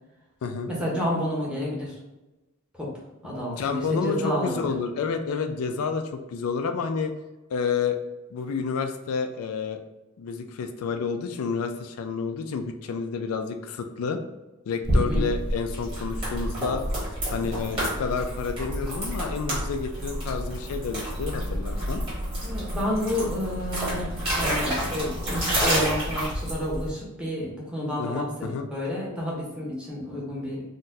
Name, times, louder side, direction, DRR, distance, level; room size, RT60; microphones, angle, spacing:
voice 1, 0.7-2.0 2.7-2.9 3.2-4.7 14.9-15.3 22.4-30.6, equal, 5° right, -6 dB, 0.8 m, -30 dB
voice 2, 3.5-7.1 7.5-8.0 8.3-9.8 10.2-14.2 14.7-16.8 17.3-22.0 28.0-28.7, left 5 dB, 80° left, 6 dB, 0.3 m, -29 dB
sound 1, 14.8-26.9, equal, 25° right, 1.4 m, -29 dB
3.9 x 2.2 x 2.6 m, 1.1 s
head